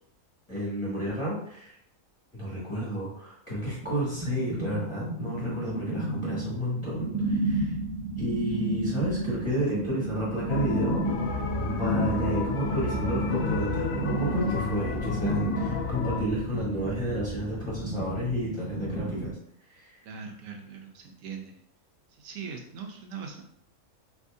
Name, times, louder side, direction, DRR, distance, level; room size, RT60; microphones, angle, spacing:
voice 1, 0.5-1.7 2.3-7.7 8.2-11.0 11.8-19.3 19.7-20.0, equal, 25° left, -7 dB, 1.3 m, -31 dB
sound 1, 3.5-19.3, right 2 dB, 25° right, 0.6 m, -32 dB
sound 2, 10.5-16.2, left 4 dB, 80° left, 1.0 m, -30 dB
voice 2, 20.0-21.6 22.1-23.4, right 6 dB, 90° right, 2 dB, 1.0 m, -41 dB
2.8 x 2.6 x 3.5 m, 0.68 s
omnidirectional pair, 1.4 m